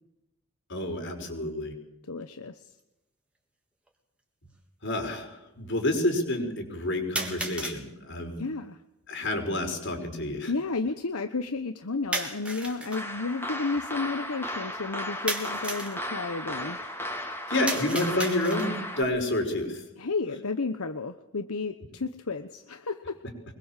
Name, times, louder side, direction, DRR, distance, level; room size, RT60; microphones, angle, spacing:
voice 1, 0.7-1.7 4.8-8.4 9.1-10.5 17.5-19.8, left 1 dB, 55° left, 4 dB, 5.6 m, -29 dB
voice 2, 2.0-2.7 8.4-8.8 10.5-16.8 20.0-23.2, left 4 dB, 80° left, 9 dB, 1.1 m, -32 dB
sound 1, 2.8-2.9 3.9-4.0 7.2-7.8 12.1-13.0 15.3-16.0 17.7-18.8, right 2 dB, 5° right, 3.2 m, -33 dB
sound 2, 12.9-19.0, left 1 dB, 10° left, 3.7 m, -35 dB
24.5 x 21.5 x 7.5 m, 0.90 s
head